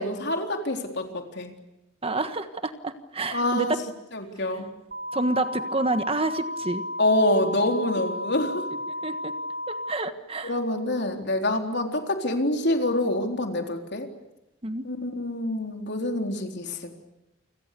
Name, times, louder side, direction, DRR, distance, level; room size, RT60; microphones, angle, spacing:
voice 1, 0.0-1.5 3.3-3.8 4.1-4.7 7.0-8.7 10.4-14.1 14.8-16.9, left 1 dB, 60° left, 4 dB, 4.0 m, -26 dB
voice 2, 2.0-3.8 5.1-6.8 9.0-9.3 9.7-10.6 14.6-14.8, right 2 dB, 30° right, 9 dB, 1.5 m, -28 dB
sound 1, 4.9-9.9, left 1 dB, 45° right, 4.0 m, -33 dB
29.5 x 26.5 x 6.9 m, 0.92 s
head